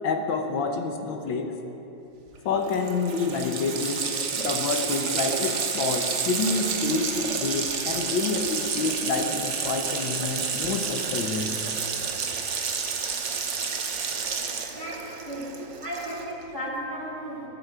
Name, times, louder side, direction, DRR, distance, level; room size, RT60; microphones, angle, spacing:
voice 1, 0.0-1.5 2.4-4.0 4.4-11.5, left 4 dB, 70° left, 5 dB, 1.6 m, -28 dB
Water tap faucet, 2.3-2.4 2.6-16.4, right 6 dB, 55° right, 0.8 m, -30 dB
voice 2, 14.7-17.5, right 1 dB, 10° left, -6 dB, 3.0 m, -35 dB
20.0 x 7.9 x 4.8 m, 2.9 s
omnidirectional pair, 2.2 m